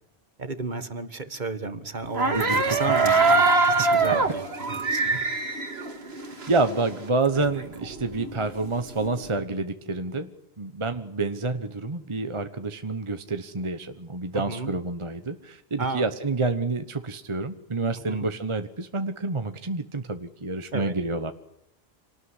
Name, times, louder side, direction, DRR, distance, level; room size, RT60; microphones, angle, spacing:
voice 1, 0.4-5.3 14.3-14.7 15.8-16.1 18.1-18.3 20.7-20.9, right 3 dB, 45° right, 11 dB, 1.8 m, -33 dB
sound 1, 2.1-6.7 7.1-7.2 7.4-9.2, right 3 dB, 75° right, 2.3 m, -23 dB
voice 2, 2.3-2.8 3.0-3.1 3.5-3.8 5.1-5.2 6.5-10.3 10.6-21.3, right 3 dB, 30° right, 9 dB, 1.1 m, -28 dB
26.5 x 19.0 x 9.9 m, 0.77 s
omnidirectional pair, 1.1 m